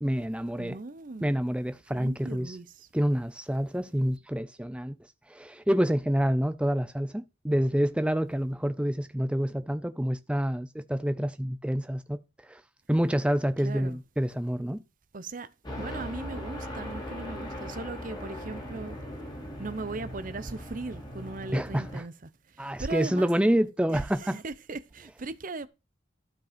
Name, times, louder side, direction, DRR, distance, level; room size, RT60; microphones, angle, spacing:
voice 1, 0.0-0.8 1.2-2.6 2.9-5.0 5.3-12.2 12.5-12.6 12.9-14.8 21.5-22.0 22.6-24.4, equal, 5° right, 0.5 m, -27 dB
voice 2, 0.6-1.3 1.9-2.9 13.6-14.0 15.1-15.5 15.8-19.0 19.6-23.3 23.9-25.7, right 3 dB, 45° right, 0.7 m, -38 dB
sound 1, 15.6-22.0, equal, 20° left, 3.1 m, -39 dB
12.0 x 5.3 x 5.1 m
head